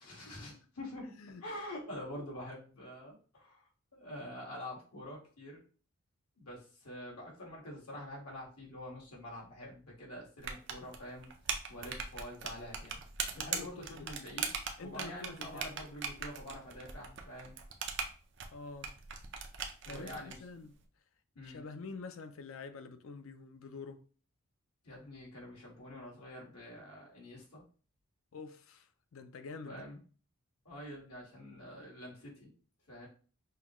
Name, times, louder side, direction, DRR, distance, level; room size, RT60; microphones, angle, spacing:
voice 1, 0.0-5.6 6.4-11.3 11.7-13.0 13.4-14.5 14.8-17.6 19.8-20.4 21.4-21.6 24.8-27.6 29.7-30.0 30.7-32.5 32.9-33.1, left 1 dB, 85° left, 1.7 m, -46 dB
sound 1, 10.4-20.4, right 6 dB, 55° right, 0.6 m, -40 dB
voice 2, 13.4-14.1 14.8-15.8 18.5-18.9 19.9-20.8 21.4-24.0 28.3-29.8, left 4 dB, 65° left, 0.4 m, -47 dB
5.6 x 2.2 x 3.0 m
head